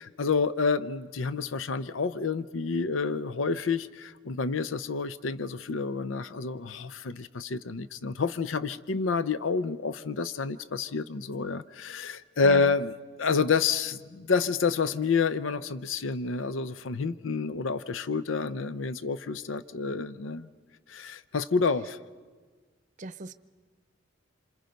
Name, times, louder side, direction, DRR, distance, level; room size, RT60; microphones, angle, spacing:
voice 1, 0.0-12.9 13.2-20.5 20.9-22.0, left 4 dB, 85° left, 15 dB, 0.6 m, -29 dB
voice 2, 12.4-12.7 23.0-23.3, right 2 dB, 40° right, 13 dB, 0.7 m, -39 dB
28.0 x 27.0 x 5.3 m, 1.5 s
head